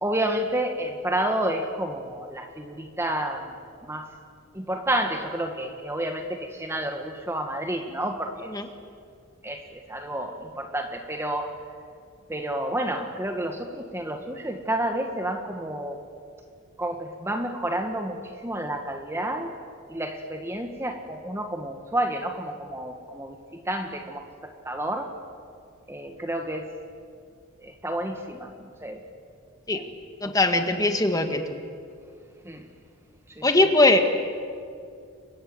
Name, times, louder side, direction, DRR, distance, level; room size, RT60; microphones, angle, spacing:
voice 1, 0.0-3.5 3.8-4.1 4.5-8.5 9.4-11.5 12.3-16.0 16.8-19.5 19.9-25.1 25.9-26.7 27.6-29.0 29.7-29.9 30.2-30.6 32.4-32.7 33.3-33.7, right 1 dB, 10° right, 5 dB, 1.5 m, -30 dB
voice 2, 30.2-31.4 33.4-34.1, left 2 dB, 15° left, 5 dB, 1.8 m, -20 dB
29.5 x 25.0 x 7.9 m, 2.3 s
head